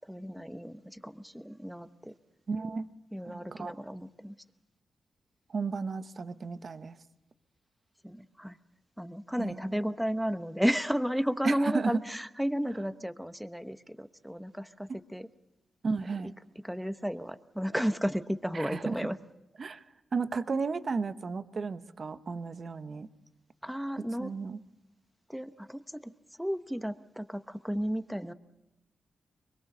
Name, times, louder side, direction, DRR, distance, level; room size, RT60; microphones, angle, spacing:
voice 1, 0.1-2.1 3.1-4.3 8.0-8.6 9.0-15.3 16.6-19.2 23.6-24.3 25.3-26.1 26.4-28.3, equal, ahead, 11 dB, 1.0 m, -33 dB
voice 2, 2.5-2.9 3.2-3.7 5.5-7.0 9.4-9.8 11.4-12.0 14.9-15.0 15.8-16.3 18.5-19.1 19.6-19.8 20.1-23.1 24.2-24.6, right 4 dB, 50° right, 11 dB, 1.0 m, -33 dB
24.0 x 22.5 x 6.8 m, 0.95 s
cardioid pair, 85°, 0 cm